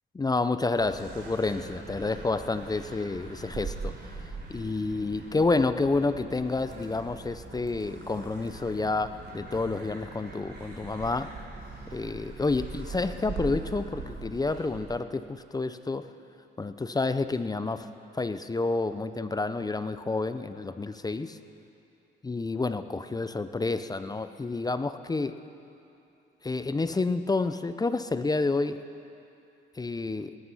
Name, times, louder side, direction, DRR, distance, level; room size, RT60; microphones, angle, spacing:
voice 1, 0.1-4.1 4.5-11.3 11.9-16.1 16.6-17.9 18.1-21.4 22.2-25.4 26.4-28.8 29.8-30.4, left 3 dB, 20° left, 11 dB, 0.6 m, -29 dB
sound 1, 0.8-14.8, right 4 dB, 60° right, 3.6 m, -41 dB
19.0 x 13.0 x 5.6 m, 2.7 s
cardioid pair, 90°, 20 cm